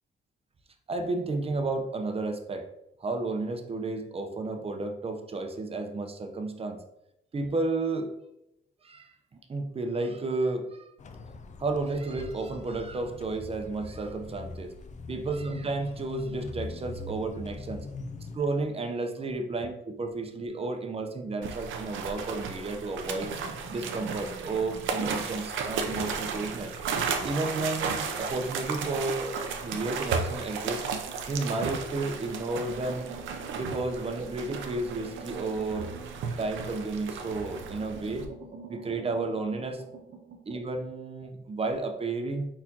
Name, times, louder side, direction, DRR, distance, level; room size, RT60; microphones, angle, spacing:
voice 1, 0.9-2.6 3.0-6.8 7.3-8.1 8.8-9.1 9.5-10.9 11.6-14.7 15.1-17.8 18.3-23.3 23.7-26.7 27.2-29.4 29.6-30.8 31.3-33.0 33.5-35.9 36.4-38.2 38.7-39.8 40.5-42.5, right 3 dB, 30° right, 5 dB, 0.7 m, -32 dB
sound 1, 11.0-18.4, left 3 dB, 35° left, 0.4 m, -42 dB
sound 2, 21.4-38.3, right 5 dB, 75° right, 0.6 m, -34 dB
sound 3, 23.0-25.5 25.8-31.4 31.9-36.9 37.3-40.6, right 4 dB, 60° right, 1.0 m, -47 dB
4.3 x 4.2 x 2.8 m, 0.84 s
cardioid pair, 90°, 20 cm